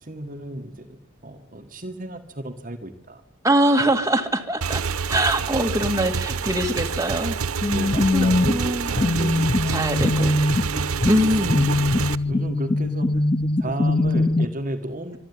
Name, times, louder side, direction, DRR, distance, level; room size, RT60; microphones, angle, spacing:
voice 1, 0.0-3.2 5.9-6.1 7.7-10.2 11.6-13.2 13.6-15.2, right 1 dB, 40° right, 6 dB, 1.6 m, -33 dB
voice 2, 3.4-4.8 5.1-7.4 8.1-8.9 9.7-10.5 11.1-11.7, right 1 dB, 15° right, 4 dB, 2.0 m, -23 dB
Motorcycle / Engine, 4.6-12.2, right 6 dB, 85° right, 0.8 m, -27 dB
sound 1, 7.6-14.5, left 2 dB, 25° left, 0.7 m, -22 dB
24.5 x 11.0 x 9.8 m, 0.81 s
head